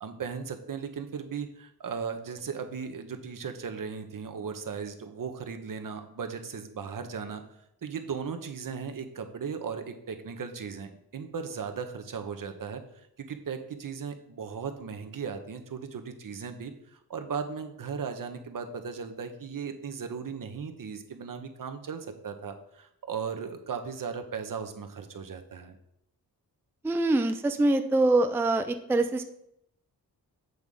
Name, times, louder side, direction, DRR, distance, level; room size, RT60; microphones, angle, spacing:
voice 1, 0.0-7.4 7.8-25.8, right 6 dB, 60° right, 7 dB, 0.9 m, -37 dB
voice 2, 26.8-29.2, right 2 dB, 5° right, 8 dB, 0.4 m, -24 dB
8.0 x 3.6 x 5.3 m, 0.77 s
wide cardioid pair, 90°, 37 cm